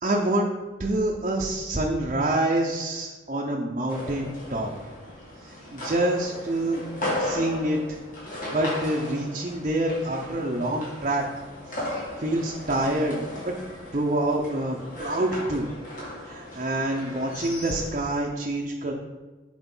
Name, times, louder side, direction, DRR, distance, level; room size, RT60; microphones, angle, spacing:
voice 1, 0.0-0.5 0.8-4.7 5.7-6.8 7.2-8.0 8.5-11.3 12.2-13.5 13.9-15.7 16.2-18.9, right 1 dB, 40° right, -2 dB, 0.7 m, -26 dB
sound 1, 3.9-17.9, left 1 dB, 45° left, 2.3 m, -36 dB
8.1 x 4.2 x 5.5 m, 1.3 s
head